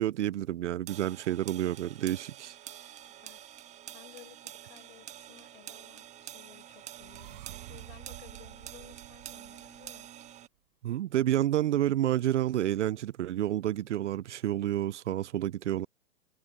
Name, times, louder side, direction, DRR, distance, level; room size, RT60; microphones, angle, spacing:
voice 1, 0.0-2.6 10.8-15.9, right 12 dB, 65° right, 0.5 m, -29 dB
sound 1, 0.9-10.5, right 11 dB, 15° right, 1.5 m, -47 dB
voice 2, 3.0-3.5 3.9-10.1, left 16 dB, 45° left, 6.7 m, -56 dB
sound 2, 6.1-10.3, right 18 dB, 45° right, 7.0 m, -51 dB
hypercardioid pair, 135°, 39 cm